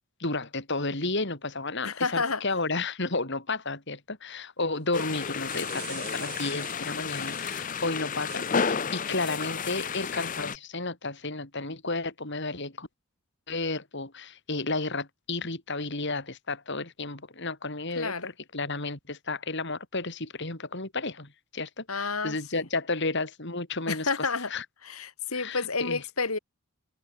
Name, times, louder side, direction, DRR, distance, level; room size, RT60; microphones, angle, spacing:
voice 1, 0.2-12.9 13.5-24.1 24.5-24.7 25.3-26.0, left 3 dB, 55° left, 3.7 m, -32 dB
voice 2, 1.8-2.4 18.0-18.3 21.9-22.6 23.9-24.5 24.8-26.4, left 4 dB, 85° left, 3.8 m, -30 dB
sound 1, 4.9-10.6, left 6 dB, 40° left, 0.7 m, -32 dB
sound 2, 5.4-7.7 8.2-8.9, right 15 dB, 85° right, 3.1 m, -46 dB
head